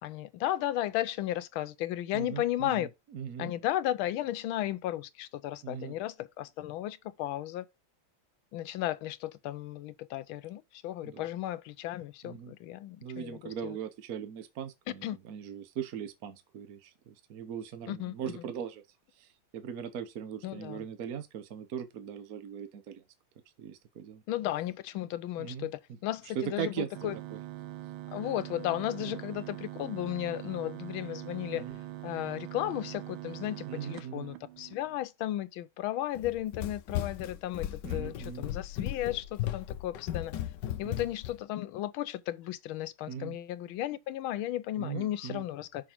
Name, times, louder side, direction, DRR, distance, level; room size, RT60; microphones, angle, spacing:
voice 1, 0.0-2.9 3.4-7.7 8.5-13.8 15.0-15.2 17.9-18.4 20.4-20.9 24.3-27.2 28.1-31.7 32.0-40.3 40.8-45.9, left 13 dB, 90° left, 1.5 m, -34 dB
voice 2, 2.1-3.5 5.6-5.9 11.0-11.2 12.2-12.5 13.0-18.8 19.1-23.0 23.6-24.2 25.4-25.7 26.3-27.4 29.0-29.2 31.5-31.8 33.6-34.3 37.8-38.4 40.8-41.1 43.1-43.4 44.8-45.4, right 8 dB, 55° right, 1.2 m, -40 dB
sound 1, 26.9-35.0, right 15 dB, 80° right, 1.5 m, -43 dB
Run, 36.1-41.4, left 12 dB, 70° left, 1.3 m, -36 dB
6.1 x 4.9 x 4.4 m
omnidirectional pair, 2.2 m